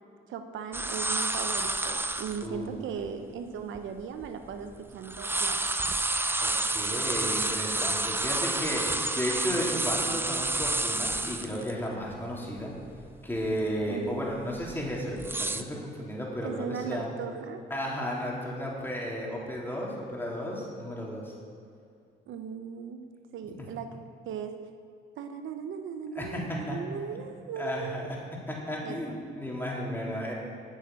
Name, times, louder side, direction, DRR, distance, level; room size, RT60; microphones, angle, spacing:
voice 1, 0.3-5.7 13.9-14.3 16.4-17.6 22.3-23.1 23.3-24.0 24.3-24.6 25.2-28.0 28.8-29.0, right 7 dB, 80° right, 7 dB, 0.9 m, -38 dB
sound 1, 0.7-2.5 3.0-3.1 3.7-4.8 5.0-11.7 12.1-12.2 12.6-13.0 13.4-13.6 14.3-15.6, right 2 dB, 10° right, 0.6 m, -29 dB
voice 2, 2.4-2.9 6.4-12.7 13.2-17.1 17.7-21.3 23.6-23.7 26.1-26.8 27.6-28.0 28.5-30.3, equal, 10° left, -4 dB, 3.3 m, -34 dB
10.0 x 6.8 x 9.0 m, 2.5 s
cardioid pair, 90°, 20 cm